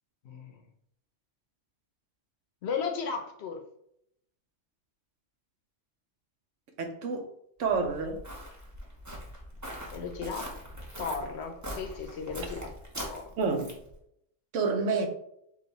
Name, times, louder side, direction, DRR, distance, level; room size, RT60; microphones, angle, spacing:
voice 1, 0.2-0.6 2.6-3.7 9.9-10.6 11.0-12.7 13.1-13.3, left 5 dB, 65° left, 4 dB, 0.9 m, -35 dB
voice 2, 6.8-7.3 7.6-8.2 13.4-13.7 14.5-15.1, right 4 dB, 90° right, 4 dB, 1.1 m, -28 dB
Walk footsteps, 7.7-13.9, equal, 15° right, 0.8 m, -42 dB
5.3 x 2.4 x 4.0 m, 0.74 s
omnidirectional pair, 1.2 m